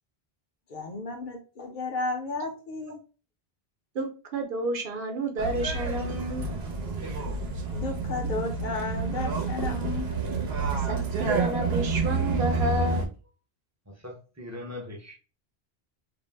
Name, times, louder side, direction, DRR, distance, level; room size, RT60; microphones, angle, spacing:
voice 1, 0.7-3.0 7.7-10.1, left 3 dB, 55° left, 0.7 m, -33 dB
voice 2, 3.9-6.5 10.7-13.0, right 2 dB, 65° right, 0.8 m, -30 dB
sound 1, 5.4-13.1, right 3 dB, 90° right, 0.9 m, -29 dB
voice 3, 13.9-15.1, left 2 dB, 20° right, 0.5 m, -40 dB
2.6 x 2.0 x 3.1 m
omnidirectional pair, 1.0 m